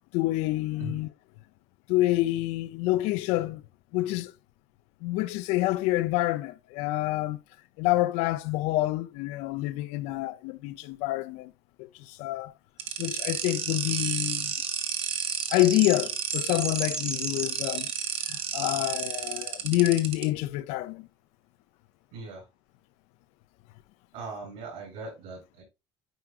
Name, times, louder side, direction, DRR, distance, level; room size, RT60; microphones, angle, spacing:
voice 1, 0.1-1.1 1.9-3.6 3.9-4.3 5.0-7.4 7.8-11.5 11.8-12.5 13.0-14.5 15.5-17.9 18.3-21.1, left 17 dB, 80° left, 0.5 m, -27 dB
sound 1, 12.8-20.2, right 9 dB, 55° right, 1.1 m, -32 dB
sound 2, 13.1-18.2, right 1 dB, 5° right, 0.4 m, -39 dB
voice 2, 22.1-22.4 24.1-25.6, right 3 dB, 75° right, 4.5 m, -39 dB
9.1 x 4.7 x 2.4 m
cardioid pair, 150°, 11 cm